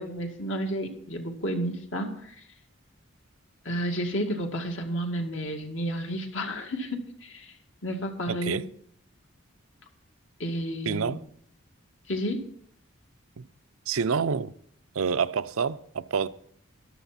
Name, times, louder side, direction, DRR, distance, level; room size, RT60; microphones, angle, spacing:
voice 1, 0.0-2.3 3.7-7.5 7.8-8.6 10.4-11.1 12.1-12.4, equal, 70° left, 2.1 m, -31 dB
voice 2, 8.3-8.7 10.9-11.2 13.4-13.5 13.9-14.5 14.9-16.3, right 6 dB, 90° right, 0.6 m, -28 dB
14.0 x 12.0 x 4.2 m
head